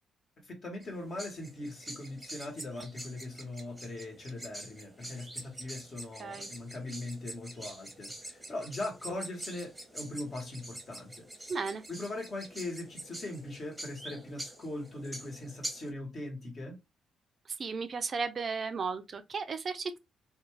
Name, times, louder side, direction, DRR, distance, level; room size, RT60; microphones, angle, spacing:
voice 1, 0.4-11.3 11.9-16.8, left 2 dB, 45° left, 1.1 m, -40 dB
sound 1, 0.8-15.9, right 1 dB, 10° right, 0.8 m, -46 dB
voice 2, 6.2-6.5 11.5-11.8 17.5-20.0, right 5 dB, 45° right, 0.4 m, -35 dB
2.5 x 2.3 x 3.0 m
cardioid pair, 90°, 0 cm